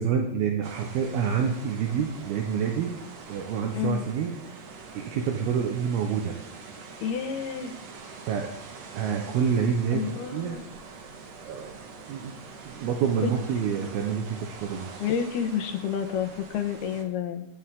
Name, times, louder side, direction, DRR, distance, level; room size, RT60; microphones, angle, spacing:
voice 1, 0.0-2.9 3.3-4.3 4.9-6.3 8.3-8.5 8.9-10.6 11.5-11.7 12.1-12.3 12.7-14.9, right 7 dB, 75° right, 2 dB, 3.0 m, -27 dB
sound 1, 0.6-17.0, right 4 dB, 50° right, 2.3 m, -44 dB
voice 2, 3.7-4.0 7.0-7.7 9.9-10.6 13.2-13.3 15.0-17.5, left 8 dB, 80° left, 6 dB, 3.2 m, -29 dB
24.5 x 10.5 x 3.8 m, 0.80 s
omnidirectional pair, 4.5 m